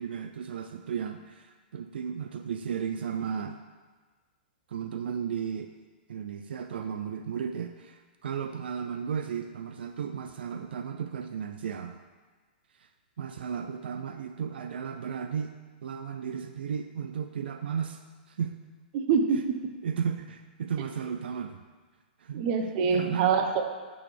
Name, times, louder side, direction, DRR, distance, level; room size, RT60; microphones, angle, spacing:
voice 1, 0.0-3.6 4.7-5.7 6.1-12.0 12.8-12.9 13.2-15.6 15.8-18.0 18.3-18.5 19.8-21.6 22.2-22.5 22.9-23.3, right 7 dB, 80° right, 7 dB, 0.4 m, -34 dB
voice 2, 18.9-19.6 22.3-23.7, right 6 dB, 40° right, 5 dB, 0.8 m, -25 dB
9.5 x 6.0 x 3.4 m, 1.4 s
hypercardioid pair, 150°, 5 cm